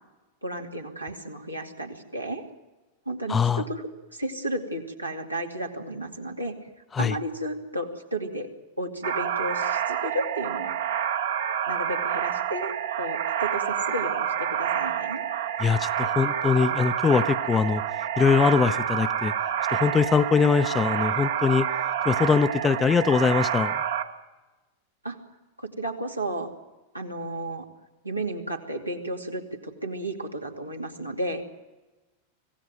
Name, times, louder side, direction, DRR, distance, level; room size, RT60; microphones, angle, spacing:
voice 1, 0.4-2.4 3.1-6.5 7.0-8.5 8.8-10.8 11.7-12.7 13.0-15.2 25.0-25.2 25.6-26.5 26.9-27.7 28.0-31.4, right 1 dB, 90° right, 0 dB, 2.6 m, -33 dB
voice 2, 3.3-3.6 6.9-7.2 15.6-17.8 18.2-19.3 19.7-21.7 22.0-23.7, left 6 dB, 20° left, 13 dB, 0.7 m, -22 dB
sound 1, 9.0-24.0, right 9 dB, 65° right, 1.5 m, -28 dB
26.0 x 16.5 x 9.2 m, 1.1 s
figure-of-eight pair, 90°, 0 cm